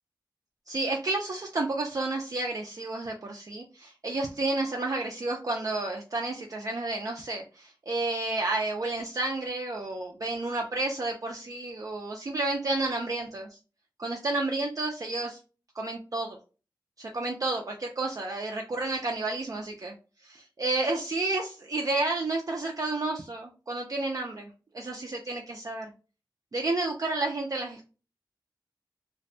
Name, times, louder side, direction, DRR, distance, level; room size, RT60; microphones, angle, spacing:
voice 1, 0.7-13.5 14.0-15.4 15.8-16.4 17.0-19.9 20.2-25.9 26.5-27.8, right 2 dB, 45° right, 0 dB, 0.4 m, -31 dB
2.5 x 2.1 x 2.6 m, 0.34 s
wide cardioid pair, 85°, 8 cm